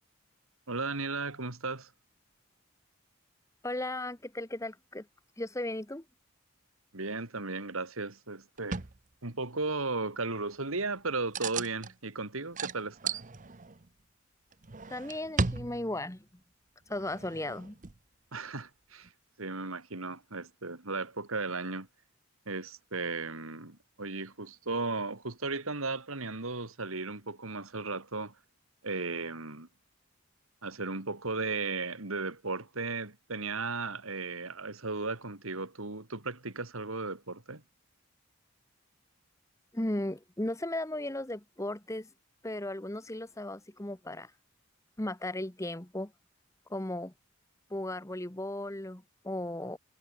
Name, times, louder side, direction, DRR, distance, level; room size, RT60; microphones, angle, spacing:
voice 1, 0.7-1.9 6.9-8.8 9.2-13.1 18.3-19.1 19.4-21.9 22.5-28.3 28.8-29.7 30.6-37.6, right 3 dB, 75° right, 2.7 m, -35 dB
voice 2, 3.6-5.1 5.4-6.0 14.9-16.2 16.9-17.7 39.7-42.1 42.4-44.3 45.0-46.1 46.7-47.1 47.7-49.8, left 1 dB, 15° left, 1.0 m, -36 dB
sound 1, 8.6-9.0 11.3-11.9 12.5-13.9 14.5-16.1 16.9-18.0 19.0-19.1, right 4 dB, 35° right, 0.9 m, -36 dB
head